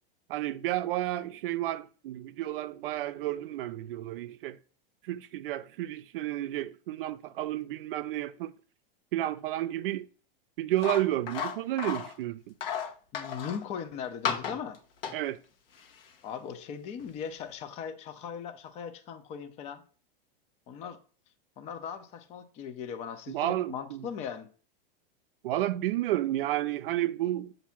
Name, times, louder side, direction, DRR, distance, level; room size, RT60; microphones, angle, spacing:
voice 1, 0.3-4.6 5.0-8.5 9.1-10.1 10.6-12.5 15.1-15.4 23.3-24.1 25.4-27.5, right 14 dB, 70° right, 0.5 m, -31 dB
sound 1, 10.8-12.1 12.6-13.6 14.2-14.8 15.0-15.1 15.8-15.9 17.0-17.1, left 7 dB, 70° left, 1.1 m, -33 dB
voice 2, 13.1-14.8 16.2-19.8 20.7-21.0 21.6-24.5, left 7 dB, 25° left, 0.5 m, -39 dB
7.2 x 2.7 x 5.7 m
supercardioid pair, 150°, 29 cm